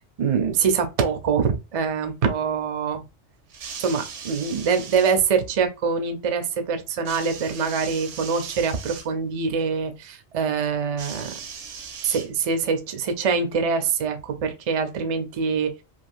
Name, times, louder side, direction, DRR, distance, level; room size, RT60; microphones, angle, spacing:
voice 1, 0.2-3.0 3.8-11.3 12.0-15.7, right 5 dB, 45° right, 0.4 m, -24 dB
sound 1, 3.5-5.2 7.0-9.1 11.0-12.7 13.6-13.7, right 6 dB, 75° right, 1.0 m, -38 dB
3.3 x 2.5 x 2.5 m
omnidirectional pair, 1.3 m